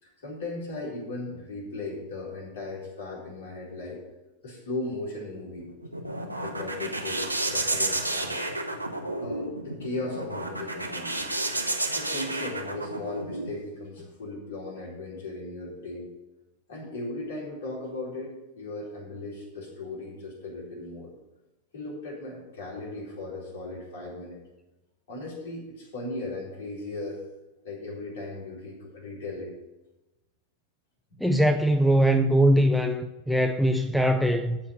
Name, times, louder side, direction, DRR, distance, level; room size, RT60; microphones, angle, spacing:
voice 1, 0.0-4.0 4.4-5.7 6.4-8.4 9.2-11.2 11.9-16.1 16.7-21.1 21.7-24.4 25.1-27.3 27.6-29.5, left 2 dB, 55° left, 4.1 m, -37 dB
sound 1, 5.6-13.5, right 2 dB, 85° right, 1.0 m, -31 dB
voice 2, 31.2-34.6, right 1 dB, ahead, 0.5 m, -22 dB
13.0 x 4.5 x 7.6 m
figure-of-eight pair, 90°, 0 cm